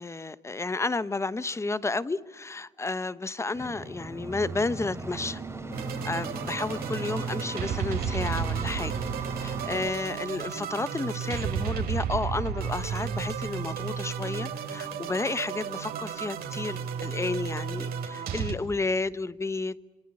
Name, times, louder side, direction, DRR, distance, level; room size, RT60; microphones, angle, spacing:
voice 1, 0.0-5.4 6.0-9.0 9.4-19.8, left 3 dB, 15° left, 1.0 m, -31 dB
sound 1, 3.5-9.9, right 2 dB, 15° right, 3.3 m, -38 dB
sound 2, 5.7-18.5, right 7 dB, 65° right, 4.3 m, -33 dB
26.5 x 25.5 x 8.8 m
cardioid pair, 110°, 17 cm